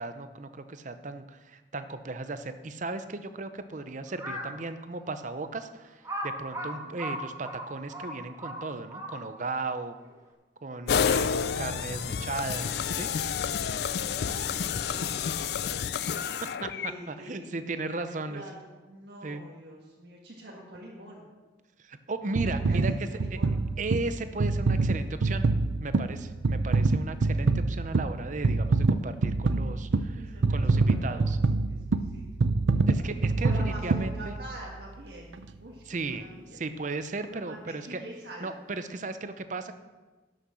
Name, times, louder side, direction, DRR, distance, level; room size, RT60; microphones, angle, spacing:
voice 1, 0.0-9.9 10.6-13.1 16.2-18.4 19.2-19.4 21.8-23.4 23.8-25.4 25.8-31.4 32.9-34.4 35.8-38.0 38.4-39.7, right 3 dB, 45° right, 10 dB, 0.7 m, -36 dB
Crow, 4.1-4.6 5.2-5.3 6.0-9.5, equal, 20° right, 1.4 m, -37 dB
sound 1, 10.9-16.9, left 7 dB, 60° left, 0.4 m, -29 dB
voice 2, 12.0-13.0 14.2-15.6 16.7-17.6 18.1-21.2 22.7-23.5 30.1-31.2 31.7-32.2 33.0-33.1 33.4-35.8 36.1-36.6 37.3-38.5, right 1 dB, 65° right, -3 dB, 1.7 m, -45 dB
sound 2, 22.4-34.8 35.3-35.4, right 3 dB, 90° right, 0.5 m, -26 dB
11.5 x 6.6 x 6.2 m, 1.2 s
head